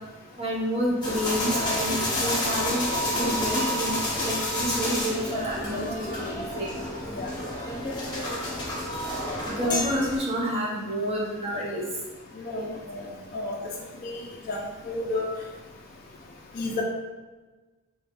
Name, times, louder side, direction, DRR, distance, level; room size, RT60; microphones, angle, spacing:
voice 1, 0.4-6.7 9.5-11.9 12.6-12.7, equal, 30° right, -4 dB, 0.9 m, -29 dB
sound 1, 1.0-10.2, left 1 dB, 20° left, 0.9 m, -29 dB
voice 2, 14.0-15.2 16.6-16.8, left 2 dB, 45° left, -2 dB, 0.4 m, -31 dB
4.1 x 3.3 x 2.5 m, 1.2 s
head